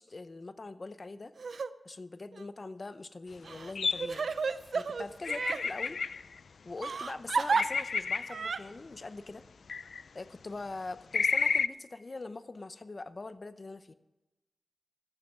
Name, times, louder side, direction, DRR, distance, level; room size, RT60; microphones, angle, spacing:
voice 1, 0.0-1.3 1.8-4.3 4.7-6.0 6.6-9.4 10.1-13.9, left 3 dB, 50° left, 12 dB, 0.7 m, -43 dB
Crying sobbing, 1.4-1.7 2.3-2.4 3.4-5.6 6.8-7.6 8.3-8.6, right 5 dB, 85° right, 0.5 m, -32 dB
sound 1, 3.7-4.1 5.2-6.4 7.5-8.5 9.7-10.0 11.1-11.7, left 5 dB, 85° left, 0.4 m, -31 dB
14.5 x 7.2 x 7.1 m, 1.0 s
wide cardioid pair, 65°, 0 cm